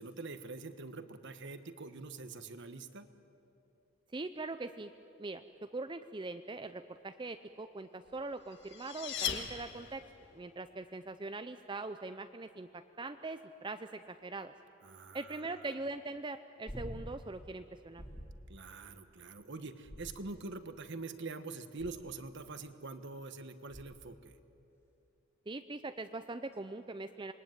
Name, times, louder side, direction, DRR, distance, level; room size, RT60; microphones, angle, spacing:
voice 1, 0.0-3.1 14.8-15.7 18.5-24.4, right 3 dB, 55° right, 10 dB, 1.3 m, -45 dB
voice 2, 4.1-4.9 5.2-10.1 10.3-14.5 15.1-18.0 25.5-27.3, right 3 dB, 20° right, 9 dB, 0.5 m, -42 dB
sound 1, 8.2-10.2, left 7 dB, 55° left, 1.9 m, -39 dB
sound 2, 16.7-17.3 18.0-18.5 19.8-20.6 21.8-22.3 23.7-24.1 26.5-26.6, equal, 10° left, 2.5 m, -47 dB
26.5 x 21.0 x 9.3 m, 2.8 s
head